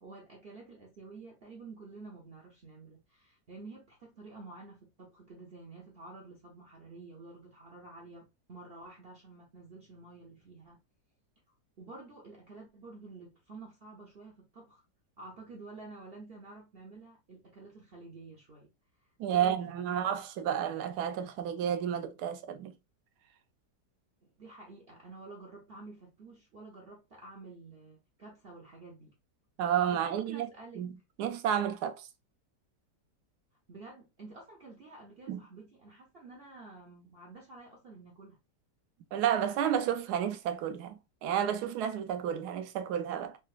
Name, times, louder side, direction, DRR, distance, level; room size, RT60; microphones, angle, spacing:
voice 1, 0.0-10.8 11.8-14.8 15.2-18.7 19.3-19.8 24.2-29.2 29.9-30.9 33.7-38.4, right 3 dB, 55° right, 0.7 m, -50 dB
voice 2, 19.2-22.7 29.6-30.5 30.8-32.1 35.3-35.4 39.1-43.4, right 9 dB, 75° right, 1.1 m, -31 dB
3.9 x 2.3 x 2.3 m
omnidirectional pair, 1.8 m